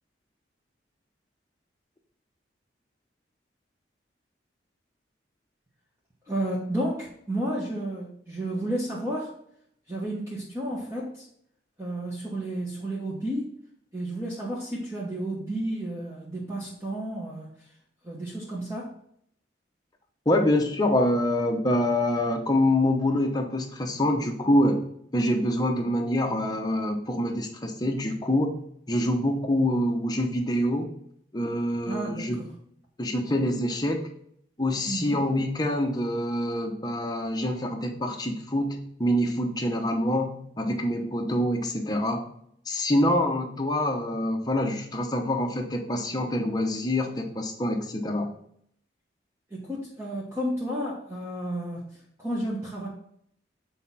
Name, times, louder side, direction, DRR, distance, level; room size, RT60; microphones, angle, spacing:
voice 1, 6.3-9.3 9.9-11.2 11.8-13.5 13.9-17.5 18.0-18.9 31.9-32.5 34.9-35.2 49.5-51.9 52.2-52.9, right 1 dB, 15° right, -6 dB, 1.2 m, -32 dB
voice 2, 20.3-24.8 25.1-28.5 28.9-30.9 31.3-32.4 33.0-34.0 34.6-42.3 42.7-48.3, left 1 dB, 20° left, 3 dB, 0.8 m, -26 dB
8.1 x 4.2 x 4.1 m, 0.69 s
head